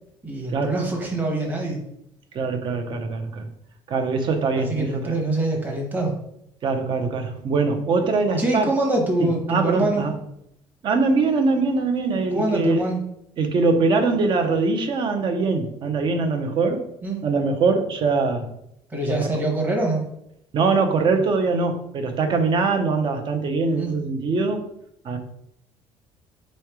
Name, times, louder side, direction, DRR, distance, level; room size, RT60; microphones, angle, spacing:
voice 1, 0.2-1.8 4.5-6.1 8.4-10.0 12.3-13.0 17.0-17.2 18.9-20.0 23.8-23.9, right 2 dB, 15° right, -1 dB, 1.0 m, -24 dB
voice 2, 2.3-3.5 3.9-5.2 6.6-8.7 9.2-10.1 10.8-12.9 13.4-16.9 17.2-18.5 19.2-19.4 20.5-24.6 25.0-25.2, right 4 dB, 45° right, 6 dB, 0.7 m, -22 dB
3.6 x 3.2 x 4.7 m, 0.77 s
cardioid pair, 155°, 11 cm